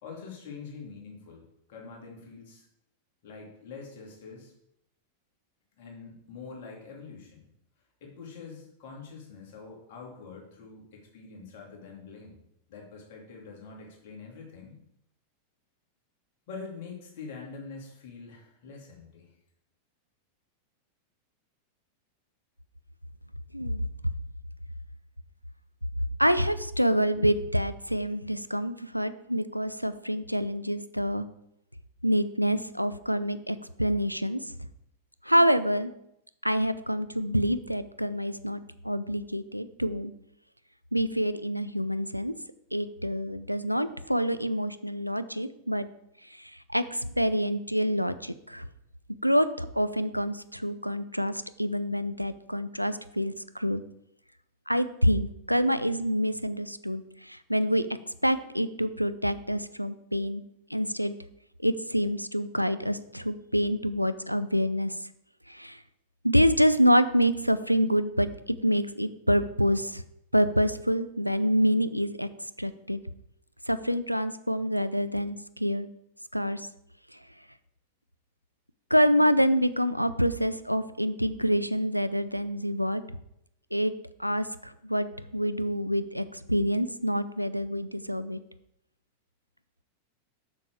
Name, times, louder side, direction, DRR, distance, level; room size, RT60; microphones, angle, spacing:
voice 1, 0.0-2.7 3.2-4.5 5.8-7.5 8.0-12.4 12.7-14.8 16.5-19.3, left 4 dB, 50° left, -1 dB, 2.6 m, -45 dB
voice 2, 26.2-31.3 32.0-34.4 35.2-35.9 36.4-38.6 38.8-40.1 40.9-42.3 42.7-45.9 46.3-48.7 49.2-53.8 54.7-57.9 58.2-60.4 60.7-61.2 61.6-64.9 65.5-65.8 66.2-70.0 70.3-72.3 72.6-73.0 73.7-75.9 76.3-76.7 78.9-83.0 83.7-83.9 84.2-85.1 85.3-88.4, equal, 90° right, 13 dB, 0.4 m, -27 dB
6.9 x 6.7 x 4.7 m, 0.77 s
figure-of-eight pair, 90°, 0 cm